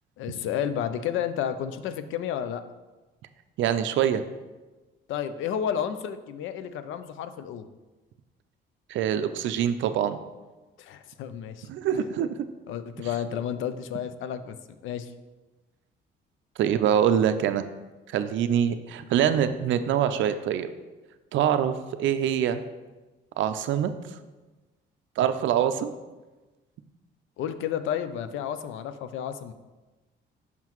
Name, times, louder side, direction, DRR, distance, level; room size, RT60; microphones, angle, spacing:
voice 1, 0.2-2.6 5.1-7.7 10.8-11.7 12.7-14.6 14.8-15.1 27.4-29.5, left 9 dB, 80° left, 11 dB, 0.4 m, -31 dB
voice 2, 3.6-4.2 8.9-10.2 11.7-12.4 16.6-17.6 18.1-20.7 21.3-22.6 23.4-23.9 25.2-25.9, right 9 dB, 75° right, 10 dB, 0.4 m, -24 dB
5.8 x 5.6 x 3.0 m, 1.2 s
cardioid pair, 90°, 20 cm